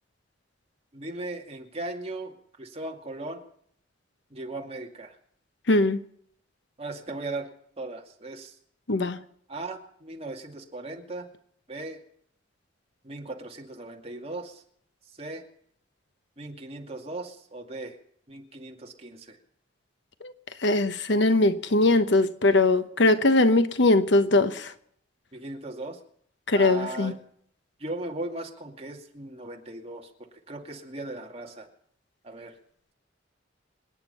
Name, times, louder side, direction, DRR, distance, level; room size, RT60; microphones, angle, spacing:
voice 1, 0.9-2.3 2.6-3.4 4.3-5.1 6.8-7.5 7.8-8.5 9.5-11.3 11.7-12.0 13.0-14.6 15.2-15.4 16.4-18.0 18.3-19.4 25.3-26.0 26.5-27.1 27.8-30.1 30.5-31.7 32.2-32.5, right 2 dB, 35° right, 2.4 m, -37 dB
voice 2, 5.7-6.0 8.9-9.2 20.2-20.3 20.6-24.7 26.5-27.1, left 2 dB, 70° left, 1.0 m, -21 dB
26.0 x 9.8 x 5.6 m
head